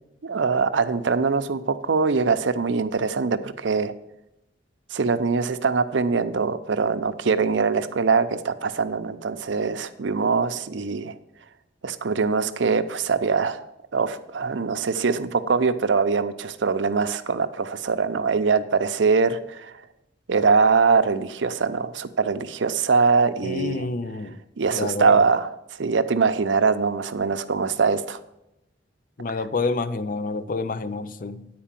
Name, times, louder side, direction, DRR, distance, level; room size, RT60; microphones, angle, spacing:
voice 1, 0.2-3.9 4.9-11.1 11.8-13.7 13.9-19.8 20.3-23.9 24.6-28.2, right 5 dB, 70° right, 0.6 m, -23 dB
voice 2, 23.4-24.4 24.7-25.2 29.2-31.5, left 3 dB, 45° left, 0.5 m, -28 dB
10.5 x 4.6 x 7.4 m
head